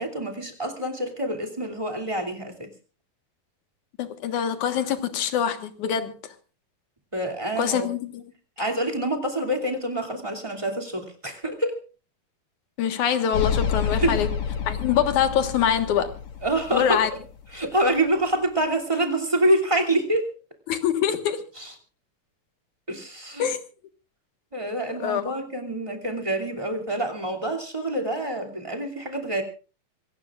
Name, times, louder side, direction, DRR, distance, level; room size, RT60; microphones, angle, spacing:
voice 1, 0.0-2.7 7.1-7.9 8.6-11.8 14.0-14.2 16.4-17.1 17.5-20.3 21.6-21.7 22.9-23.5 24.5-29.4, right 1 dB, 10° right, 2.4 m, -26 dB
voice 2, 4.0-6.1 7.6-8.2 12.8-14.3 14.7-16.1 16.7-17.1 20.7-21.4 23.4-23.6 25.0-25.4, left 9 dB, 75° left, 2.9 m, -24 dB
sound 1, 13.3-17.6, left 7 dB, 50° left, 2.5 m, -29 dB
26.0 x 17.5 x 2.5 m
omnidirectional pair, 3.5 m